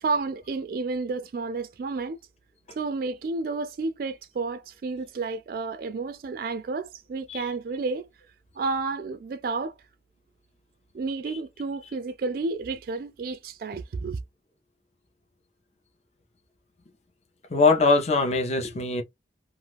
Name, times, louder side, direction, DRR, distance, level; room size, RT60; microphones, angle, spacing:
voice 1, 0.0-2.2 2.8-8.1 8.5-9.7 10.9-14.2, right 3 dB, 50° right, 0.3 m, -31 dB
voice 2, 17.5-19.0, left 3 dB, 35° left, 0.6 m, -22 dB
2.5 x 2.3 x 3.2 m
head